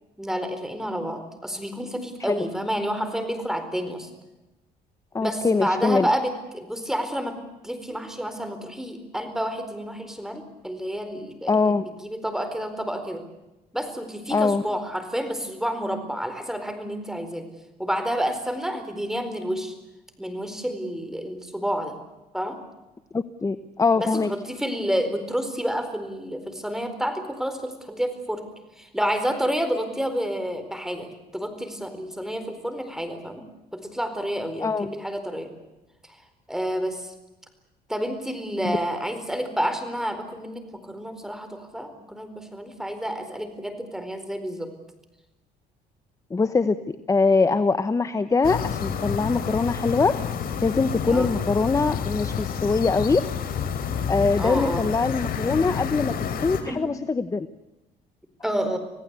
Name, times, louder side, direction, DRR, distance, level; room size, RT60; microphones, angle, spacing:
voice 1, 0.2-4.1 5.2-11.6 12.0-13.2 13.7-17.5 17.8-19.7 20.2-22.0 22.3-22.6 24.0-28.5 28.8-33.4 33.7-35.5 36.1-36.2 36.5-37.1 37.9-44.7 51.1-51.3 54.4-54.9 56.7-56.9 58.4-58.8, equal, 5° right, 8 dB, 4.3 m, -29 dB
voice 2, 5.1-6.1 11.5-11.9 14.3-14.6 23.1-24.3 34.6-34.9 38.6-38.8 46.3-46.8 47.1-50.1 50.6-53.2 54.1-56.1 56.4-57.5, left 4 dB, 20° left, 12 dB, 0.9 m, -22 dB
sound 1, 48.4-56.6, left 7 dB, 60° left, 3.6 m, -29 dB
27.0 x 17.5 x 8.3 m, 1.0 s
cardioid pair, 110°, 17 cm